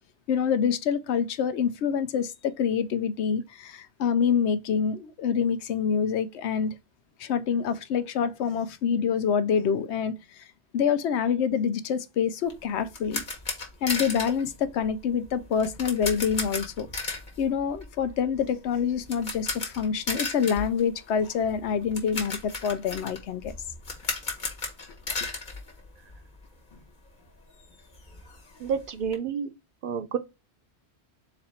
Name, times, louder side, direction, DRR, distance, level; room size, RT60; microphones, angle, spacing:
voice 1, 0.3-6.7 7.2-10.5 10.7-13.2 13.8-16.9 17.4-23.5, left 7 dB, 90° left, 0.9 m, -26 dB
sound 1, 12.5-26.5 26.7-26.9 27.3-27.4 27.6-29.2, left 3 dB, 45° left, 1.2 m, -35 dB
voice 2, 28.6-29.5 29.8-30.2, right 7 dB, 60° right, 0.6 m, -29 dB
4.1 x 2.6 x 4.2 m
omnidirectional pair, 1.1 m